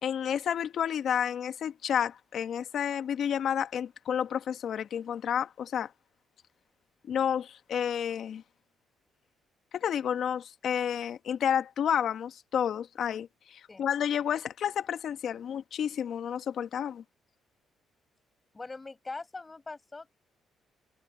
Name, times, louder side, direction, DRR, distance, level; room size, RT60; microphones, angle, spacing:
voice 1, 0.0-5.9 7.1-8.4 9.7-17.0, left 8 dB, 65° left, 1.7 m, -30 dB
voice 2, 18.5-20.2, left 3 dB, 25° left, 6.3 m, -42 dB
cardioid pair, 90°, 0 cm